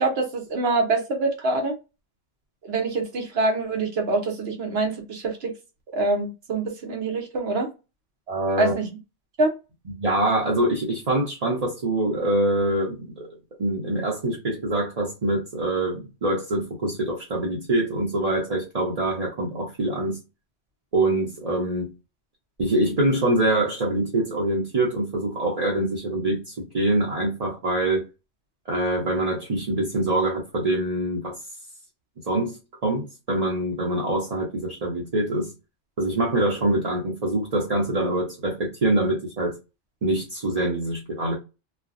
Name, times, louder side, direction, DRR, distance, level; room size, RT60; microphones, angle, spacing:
voice 1, 0.0-1.7 2.6-5.5 5.9-7.7 8.6-8.9 9.4-9.5, right 3 dB, 65° right, 1.1 m, -25 dB
voice 2, 8.3-8.7 9.9-13.3 13.6-20.2 20.9-21.9 22.6-28.0 28.7-31.4 32.2-35.5 36.0-39.5 40.0-41.3, right 1 dB, 40° right, 0.8 m, -24 dB
3.1 x 2.2 x 2.5 m
omnidirectional pair, 1.2 m